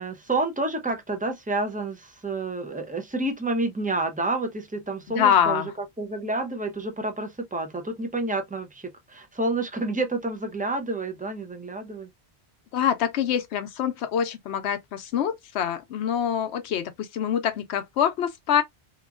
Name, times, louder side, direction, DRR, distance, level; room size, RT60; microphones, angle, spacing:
voice 1, 0.0-5.6 6.0-12.1, right 2 dB, 15° right, 0.3 m, -29 dB
voice 2, 5.1-5.7 12.7-18.6, left 8 dB, 85° left, 0.9 m, -25 dB
2.9 x 2.4 x 2.3 m
omnidirectional pair, 1.1 m